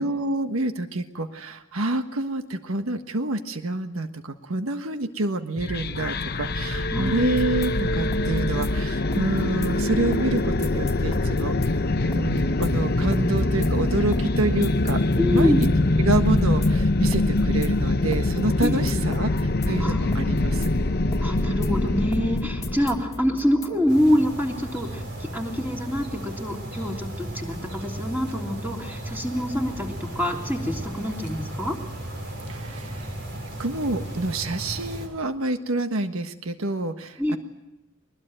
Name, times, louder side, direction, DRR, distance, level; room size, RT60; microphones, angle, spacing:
voice 1, 0.0-11.6 12.1-15.0 15.3-15.7 16.0-20.7 32.5-33.1 33.6-37.4, right 2 dB, 80° right, 8 dB, 1.5 m, -28 dB
sound 1, 5.6-23.0, left 2 dB, 50° left, 0.9 m, -24 dB
voice 2, 6.9-7.3 15.2-15.6 18.6-19.2 19.8-20.4 21.2-31.8 37.2-37.4, left 1 dB, 10° right, 1 dB, 3.4 m, -26 dB
sound 2, 7.2-23.9, left 1 dB, 15° left, 2.5 m, -37 dB
sound 3, 23.9-35.1, right 1 dB, 55° right, 6.3 m, -35 dB
22.5 x 20.5 x 9.0 m, 0.93 s
head